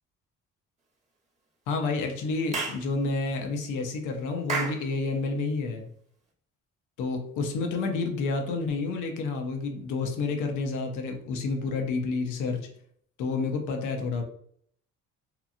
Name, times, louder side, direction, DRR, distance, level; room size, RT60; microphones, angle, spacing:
voice 1, 1.7-5.9 7.0-12.7 13.2-14.2, left 3 dB, 80° left, 4 dB, 0.6 m, -29 dB
Clapping / Chirp tweet, 2.5-2.8 4.5-4.8, right 4 dB, 25° right, 0.8 m, -30 dB
2.8 x 2.4 x 2.4 m, 0.63 s
cardioid pair, 90°, 30 cm